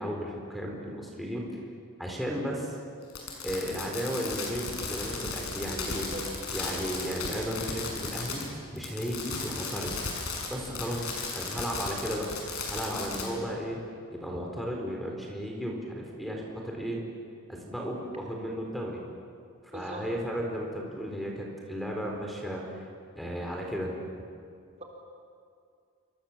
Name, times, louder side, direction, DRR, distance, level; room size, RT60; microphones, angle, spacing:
voice 1, 0.0-1.6 2.0-2.8 3.4-6.1 6.5-9.9 10.5-12.2 12.7-13.8 14.1-17.0 17.5-19.0 19.7-22.8 23.2-24.3, equal, ahead, 0 dB, 4.3 m, -34 dB
Fireworks, 3.1-8.5 8.8-13.3, left 4 dB, 80° left, 6.6 m, -35 dB
voice 2, 5.9-6.2 19.7-20.1, right 1 dB, 30° right, -1 dB, 3.9 m, -41 dB
28.0 x 26.0 x 7.5 m, 2.3 s
head